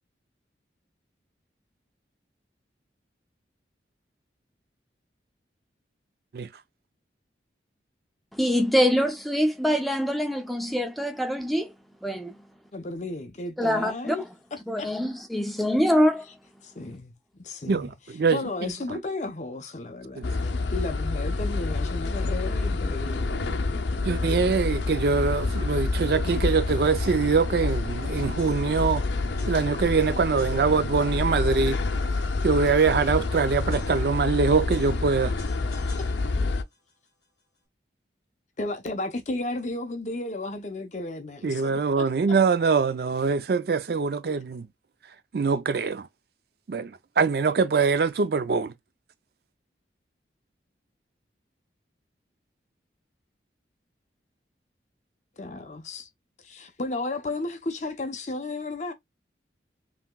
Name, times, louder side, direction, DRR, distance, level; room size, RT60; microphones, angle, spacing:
voice 1, 8.3-11.7 12.0-12.3 13.6-14.2 14.7-16.3, equal, ahead, 0.4 m, -24 dB
voice 2, 12.7-14.2 14.5-14.9 16.6-17.1 17.4-17.9 18.3-23.5 38.6-41.7 42.0-42.1 55.4-56.1 56.4-58.9, left 2 dB, 40° left, 0.7 m, -33 dB
voice 3, 17.7-19.0 20.2-20.3 24.0-29.0 29.5-31.8 32.4-35.3 41.4-44.6 45.3-46.1 46.7-48.7, right 5 dB, 60° right, 0.4 m, -24 dB
sound 1, 20.2-36.6, left 3 dB, 80° left, 0.6 m, -28 dB
sound 2, 25.7-26.1 26.7-27.0 27.7-29.0 29.4-30.0 30.4-31.4 32.0-34.4 34.7-36.6, left 4 dB, 25° left, 2.3 m, -50 dB
5.7 x 2.9 x 2.2 m
head